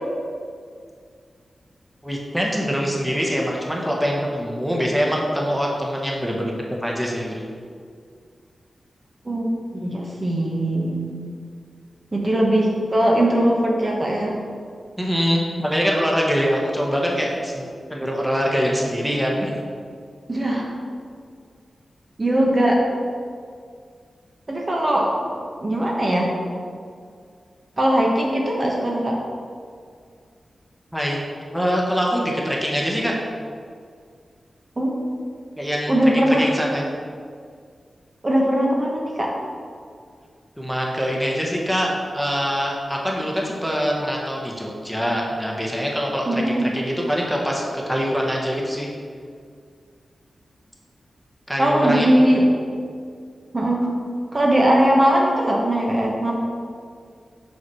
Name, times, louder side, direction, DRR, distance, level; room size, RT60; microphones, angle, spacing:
voice 1, 2.0-7.5 15.0-19.5 30.9-31.2 31.5-33.1 35.6-36.8 40.6-48.9 51.5-52.4, equal, ahead, -2 dB, 1.4 m, -24 dB
voice 2, 9.2-11.2 12.1-14.4 20.3-20.7 22.2-22.8 24.5-25.1 25.6-26.3 27.8-29.2 34.8-35.0 35.9-36.5 38.2-39.3 46.3-46.7 51.6-52.5 53.5-53.9 54.3-56.3, right 1 dB, 35° right, -2 dB, 1.2 m, -20 dB
5.7 x 4.7 x 6.3 m, 2.1 s
cardioid pair, 60°, 0 cm